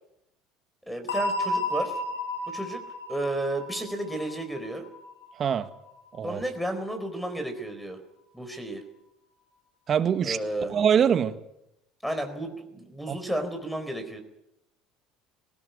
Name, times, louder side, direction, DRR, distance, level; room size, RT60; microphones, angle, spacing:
voice 1, 0.9-2.0 2.5-2.8 3.1-4.8 6.2-8.0 8.3-8.8 10.2-10.7 12.0-14.2, right 1 dB, ahead, 4.4 m, -32 dB
sound 1, 1.1-5.7, left 1 dB, 85° left, 3.9 m, -32 dB
voice 2, 9.9-10.4 10.7-11.3 13.1-13.2, right 8 dB, 40° right, 1.6 m, -23 dB
19.5 x 17.5 x 9.5 m
hypercardioid pair, 70°, 0 cm